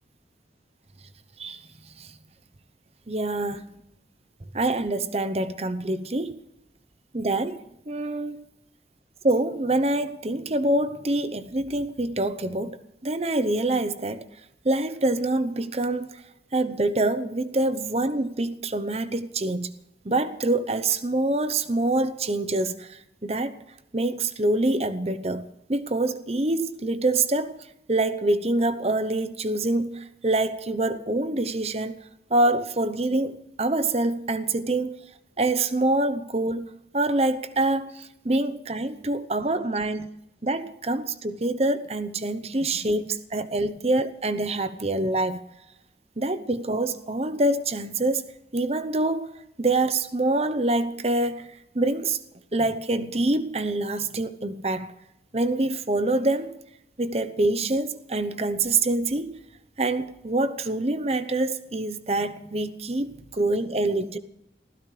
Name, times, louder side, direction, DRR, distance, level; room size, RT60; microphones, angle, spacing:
voice 1, 3.1-3.8 4.5-6.4 7.1-7.6 7.9-8.4 9.2-12.8 13.0-14.2 14.6-16.2 16.5-19.7 20.0-23.5 23.9-27.6 27.9-32.0 32.3-35.0 35.4-40.1 40.4-45.4 46.2-48.3 48.5-52.2 52.5-54.9 55.3-56.5 57.0-59.4 59.8-64.2, right 2 dB, 35° right, 0.9 m, -25 dB
26.5 x 16.0 x 3.3 m
head